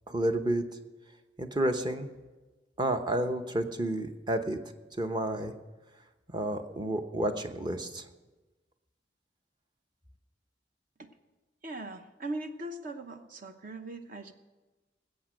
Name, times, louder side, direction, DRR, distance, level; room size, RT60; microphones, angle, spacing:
voice 1, 0.1-0.6 1.4-2.1 2.8-4.6 5.0-5.5 6.3-8.0, right 1 dB, 25° right, 7 dB, 0.9 m, -30 dB
voice 2, 11.6-14.3, right 2 dB, 50° right, 7 dB, 1.0 m, -40 dB
19.5 x 8.3 x 6.4 m, 1.2 s
head